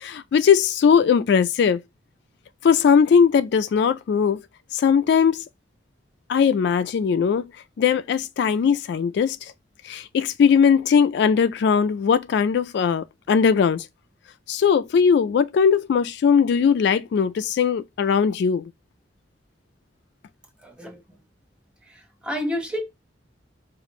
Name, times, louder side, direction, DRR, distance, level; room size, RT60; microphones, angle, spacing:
voice 1, 0.0-1.8 2.6-4.4 4.7-5.4 6.3-7.5 7.8-9.5 9.8-13.9 14.5-18.6, left 6 dB, 65° left, 0.3 m, -19 dB
voice 2, 20.6-21.0 22.2-22.8, left 1 dB, 5° right, 0.9 m, -28 dB
4.8 x 2.5 x 3.0 m
head